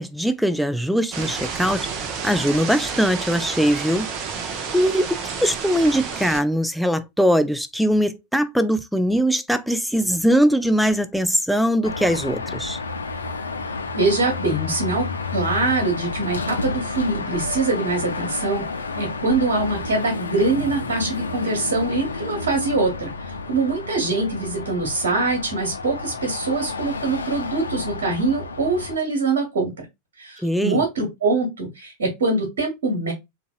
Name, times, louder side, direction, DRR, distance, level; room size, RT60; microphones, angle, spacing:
voice 1, 0.0-4.1 4.4-12.8 30.4-30.8, equal, ahead, 0.4 m, -21 dB
sound 1, 1.1-6.4, right 6 dB, 35° right, 0.7 m, -30 dB
Car passing by / Traffic noise roadway noise / Engine, 11.8-29.0, left 3 dB, 75° left, 0.5 m, -31 dB
voice 2, 13.9-18.6 19.0-29.8 30.2-33.1, right 3 dB, 60° right, 1.3 m, -23 dB
3.9 x 2.5 x 2.4 m
figure-of-eight pair, 90°, 0 cm